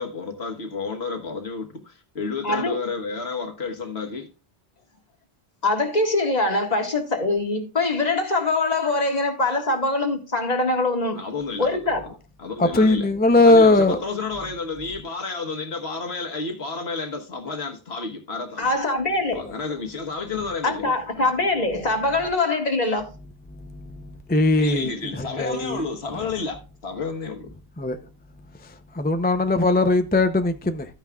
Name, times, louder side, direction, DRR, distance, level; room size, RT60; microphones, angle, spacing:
voice 1, 0.0-4.3 11.1-11.8 12.0-12.1 12.4-13.1 13.5-18.7 19.3-21.3 24.6-27.5, left 4 dB, 75° left, 1.6 m, -31 dB
voice 2, 2.4-2.8 5.6-11.2 11.6-12.0 18.6-19.5 20.6-23.1, left 2 dB, 40° left, 1.8 m, -23 dB
voice 3, 12.6-14.0 23.9-24.0 24.3-25.8 27.8-28.0 28.9-30.9, left 2 dB, 10° left, 0.5 m, -19 dB
12.5 x 9.2 x 2.4 m
omnidirectional pair, 1.1 m